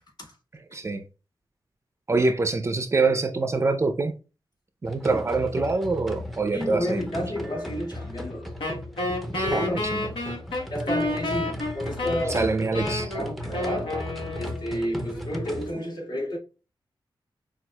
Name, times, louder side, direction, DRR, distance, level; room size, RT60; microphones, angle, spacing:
voice 1, 0.7-1.0 2.1-4.1 4.8-7.0 9.3-10.1 12.3-13.1, right 3 dB, 35° right, 0.5 m, -25 dB
sound 1, 4.8-15.7, left 1 dB, ahead, 0.7 m, -36 dB
voice 2, 6.5-8.5 9.4-9.8 10.7-12.5 13.1-16.4, equal, 55° left, 2.1 m, -31 dB
Wind instrument woodwind instrument, 8.6-14.9, left 2 dB, 85° left, 1.2 m, -30 dB
5.9 x 2.4 x 2.2 m
wide cardioid pair, 105°, 8 cm